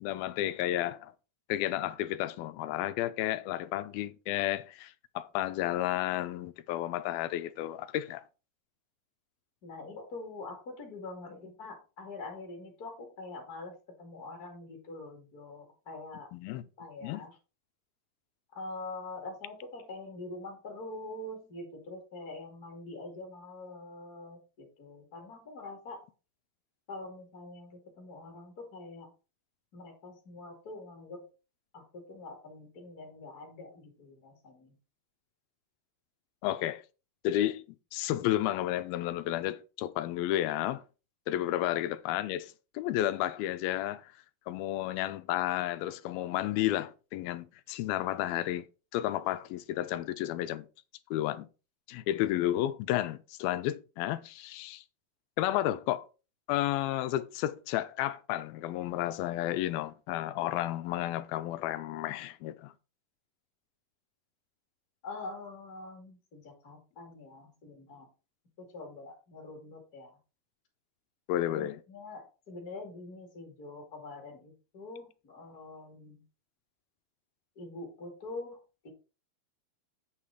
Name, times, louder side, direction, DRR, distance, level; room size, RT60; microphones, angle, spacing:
voice 1, 0.0-1.1 1.5-8.2 16.3-16.6 17.0-17.2 36.4-36.8 37.2-37.6 37.9-40.8 41.3-44.1 44.5-48.7 48.9-50.7 51.1-51.5 51.9-54.8 55.4-56.1 56.5-62.7 71.3-71.8, left 13 dB, 90° left, 2.5 m, -32 dB
voice 2, 9.6-16.3 16.8-17.4 18.5-26.1 26.9-29.1 29.7-31.3 31.7-34.7 41.3-41.6 65.0-68.1 68.6-70.2 71.5-76.2 77.6-78.9, left 2 dB, 30° left, 2.3 m, -45 dB
8.8 x 5.8 x 4.8 m
omnidirectional pair, 4.2 m